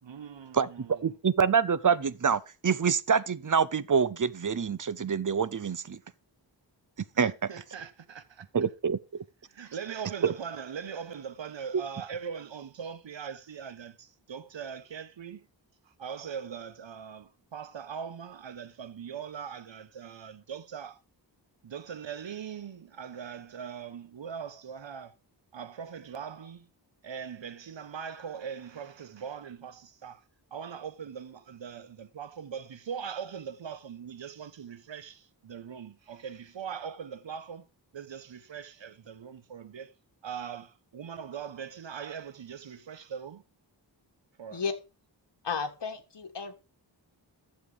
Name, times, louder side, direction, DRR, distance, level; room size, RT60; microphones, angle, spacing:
voice 1, 0.0-1.2 7.1-8.7 9.5-15.5 15.9-21.0 21.6-25.1 25.5-26.7 27.0-30.2 30.5-37.7 37.9-39.9 40.2-43.4 44.4-44.8, right 7 dB, 85° right, 1.2 m, -41 dB
voice 2, 1.0-6.0 7.2-7.5 8.5-9.2 10.2-10.3 11.7-11.8, right 6 dB, 45° right, 0.8 m, -26 dB
voice 3, 45.4-46.5, left 5 dB, 70° left, 1.8 m, -33 dB
12.5 x 7.6 x 5.0 m
wide cardioid pair, 80°, 44 cm